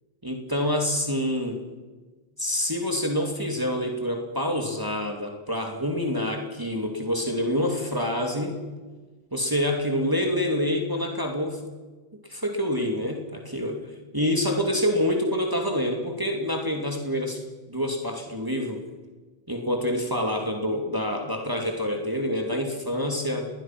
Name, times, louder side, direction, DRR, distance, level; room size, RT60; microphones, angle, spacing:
voice 1, 0.2-1.6 2.4-8.6 9.3-11.6 12.3-13.8 14.1-17.4 17.7-18.8 19.5-23.5, left 1 dB, 20° right, 2 dB, 2.7 m, -27 dB
27.5 x 21.0 x 6.0 m, 1.3 s
omnidirectional pair, 1.0 m